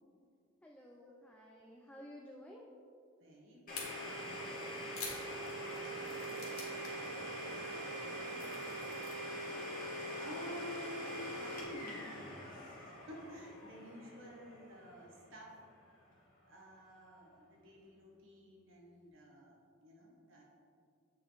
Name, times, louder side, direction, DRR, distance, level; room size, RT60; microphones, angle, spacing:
voice 1, 0.6-2.7 5.7-6.7 7.0-8.8 17.0-17.5, equal, 5° left, -1 dB, 0.4 m, -57 dB
voice 2, 3.2-4.8 9.6-15.6 16.4-20.4, equal, 65° right, -2 dB, 1.4 m, -52 dB
Domestic sounds home sounds, 3.7-15.3, right 1 dB, 40° left, 1.6 m, -43 dB
sound 1, 3.8-3.9 4.6-7.1 7.3-7.6 8.0-9.2, left 5 dB, 85° left, 1.7 m, -47 dB
7.7 x 5.0 x 3.9 m, 2.3 s
head